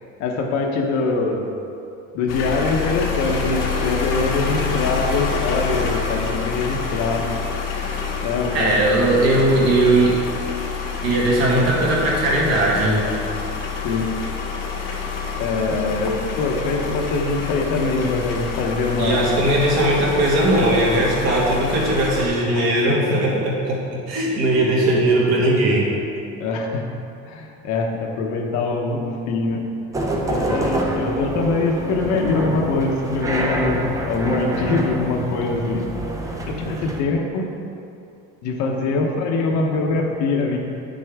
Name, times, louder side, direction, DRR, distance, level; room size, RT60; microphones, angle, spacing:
voice 1, 0.2-1.5 2.1-7.3 8.2-8.7 13.8-14.1 15.4-19.2 22.5-23.0 26.4-26.9 27.3-29.6 30.3-35.9 36.5-37.5 38.4-40.6, left 3 dB, 65° left, 1 dB, 1.1 m, -23 dB
sound 1, 2.3-22.3, left 5 dB, 90° left, 1.5 m, -27 dB
voice 2, 8.5-10.2 11.0-13.1 19.0-25.9, right 1 dB, 55° right, -4 dB, 1.8 m, -19 dB
sound 2, 29.9-37.0, right 2 dB, 10° right, 0.4 m, -27 dB
9.1 x 6.2 x 3.6 m, 2.6 s
cardioid pair, 180°, 30 cm